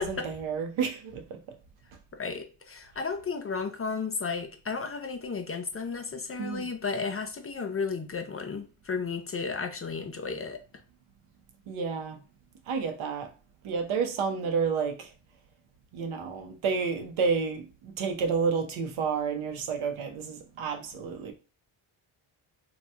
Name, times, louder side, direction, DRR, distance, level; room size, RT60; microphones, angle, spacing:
voice 1, 0.0-1.4 6.4-6.7 11.7-12.2 12.7-13.3 13.6-15.1 15.9-21.3, right 5 dB, 75° right, 0.8 m, -30 dB
voice 2, 2.1-10.6, left 5 dB, 30° left, 0.5 m, -33 dB
2.8 x 2.3 x 3.3 m
cardioid pair, 75°, 50 cm